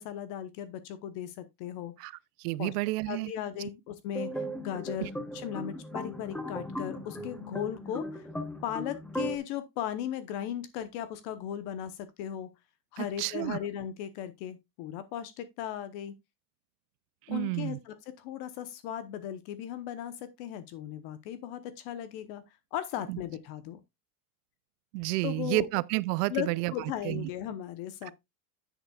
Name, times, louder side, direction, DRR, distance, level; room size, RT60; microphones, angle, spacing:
voice 1, 0.0-1.9 2.6-2.7 3.1-8.3 8.6-12.5 12.9-16.1 17.3-22.4 22.7-23.8 25.2-25.7 26.3-28.1, left 10 dB, 50° left, 1.0 m, -37 dB
voice 2, 2.4-3.3 5.0-5.1 13.0-13.6 17.3-17.8 23.1-23.2 24.9-27.3 28.0-28.1, right 21 dB, 70° right, 0.6 m, -31 dB
sound 1, 4.1-9.4, equal, ahead, 0.8 m, -37 dB
9.9 x 8.3 x 2.3 m
supercardioid pair, 155°, 49 cm